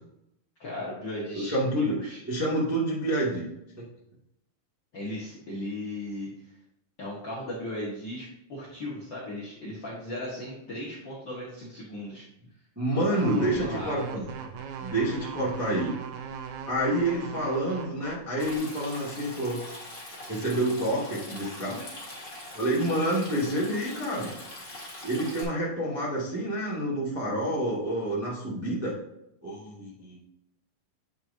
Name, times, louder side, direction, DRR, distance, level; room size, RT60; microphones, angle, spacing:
voice 1, 0.6-2.2 4.9-6.5 7.0-12.2 12.9-14.0, left 1 dB, 50° left, -5 dB, 1.4 m, -37 dB
voice 2, 1.3-3.5 3.8-3.9 12.7-14.3 14.8-15.9 16.7-19.6 20.3-21.8 22.5-24.3 25.0-28.9 29.4-30.2, right 1 dB, 10° right, -6 dB, 1.1 m, -28 dB
sound 1, 13.1-18.6, right 6 dB, 75° right, 1.9 m, -39 dB
Stream, 18.4-25.4, left 1 dB, 30° left, 1.0 m, -42 dB
8.3 x 6.0 x 2.7 m, 0.82 s
omnidirectional pair, 3.8 m